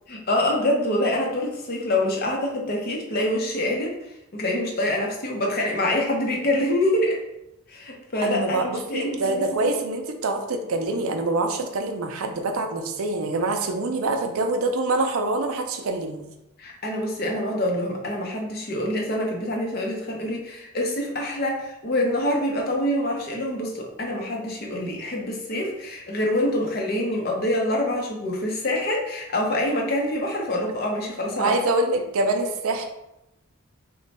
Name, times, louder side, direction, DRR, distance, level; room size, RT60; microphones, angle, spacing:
voice 1, 0.1-3.9 4.3-7.2 7.7-9.7 16.6-31.6, left 1 dB, 45° left, 0 dB, 0.6 m, -26 dB
voice 2, 8.2-16.2 31.4-32.9, right 2 dB, 80° right, 5 dB, 0.5 m, -25 dB
3.1 x 2.2 x 4.0 m, 0.88 s
head